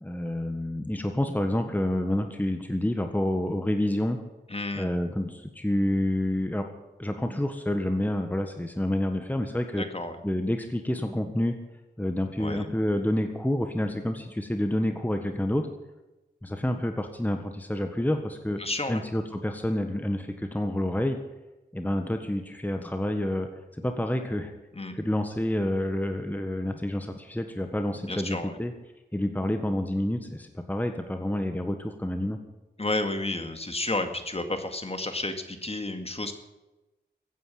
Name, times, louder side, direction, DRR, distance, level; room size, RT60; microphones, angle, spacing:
voice 1, 0.0-4.2 4.7-6.7 7.0-9.9 10.2-11.5 12.0-15.7 16.4-18.6 18.9-21.2 21.7-24.5 24.9-28.7 29.1-32.4, left 1 dB, 10° left, 6 dB, 1.5 m, -28 dB
voice 2, 4.5-4.9 9.7-10.2 12.4-12.7 18.6-19.0 24.7-24.9 28.0-28.6 32.8-36.3, left 2 dB, 35° left, 7 dB, 2.1 m, -31 dB
15.5 x 9.4 x 8.8 m, 1.0 s
wide cardioid pair, 55°, 18 cm